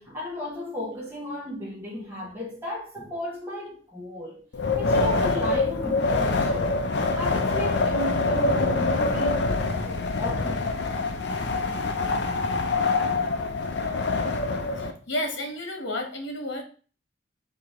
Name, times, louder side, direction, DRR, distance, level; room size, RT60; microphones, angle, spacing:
voice 1, 0.0-4.5 4.8-6.8 7.1-10.7, left 1 dB, 10° right, 0.9 m, -35 dB
Wind, 4.5-14.9, left 3 dB, 65° left, 0.6 m, -25 dB
voice 2, 14.7-16.6, left 1 dB, 90° left, 1.2 m, -31 dB
4.8 x 2.9 x 3.6 m
head